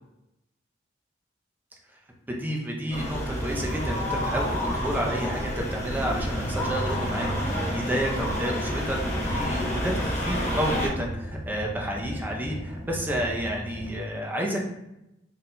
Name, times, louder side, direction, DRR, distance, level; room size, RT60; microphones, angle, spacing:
voice 1, 2.3-14.6, equal, 10° right, 0 dB, 0.5 m, -30 dB
sound 1, 2.9-10.9, equal, 35° left, 1.1 m, -29 dB
sound 2, 3.3-13.9, equal, 65° right, 1.0 m, -37 dB
4.0 x 3.7 x 2.2 m, 0.89 s
head